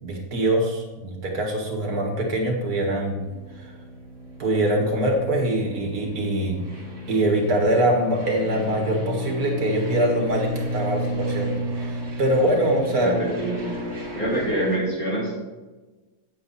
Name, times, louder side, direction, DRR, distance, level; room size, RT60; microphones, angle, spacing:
voice 1, 0.0-3.2 3.6-3.7 4.4-6.6 7.1-11.5 11.8-13.2, right 1 dB, 85° right, 1 dB, 2.2 m, -23 dB
sound 1, 3.2-14.8, right 1 dB, 55° right, 2.4 m, -33 dB
voice 2, 12.9-13.8 14.1-15.4, right 1 dB, 70° left, -6 dB, 3.8 m, -26 dB
8.6 x 7.8 x 4.1 m, 1.2 s
omnidirectional pair, 1.6 m